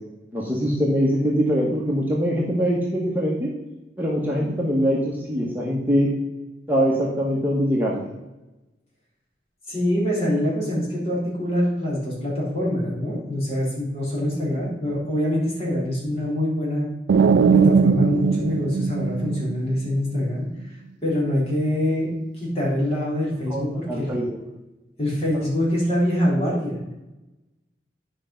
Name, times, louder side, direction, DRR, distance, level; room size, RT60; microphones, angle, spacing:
voice 1, 0.3-3.5 4.0-6.1 6.7-8.0 23.5-24.4, equal, 10° right, -4 dB, 1.3 m, -23 dB
voice 2, 9.7-17.0 17.5-20.5 21.0-24.1 25.0-26.7, left 1 dB, 35° left, -5 dB, 3.8 m, -24 dB
sound 1, 17.1-19.9, right 5 dB, 80° right, 0.3 m, -19 dB
10.0 x 5.2 x 5.7 m, 1.0 s
head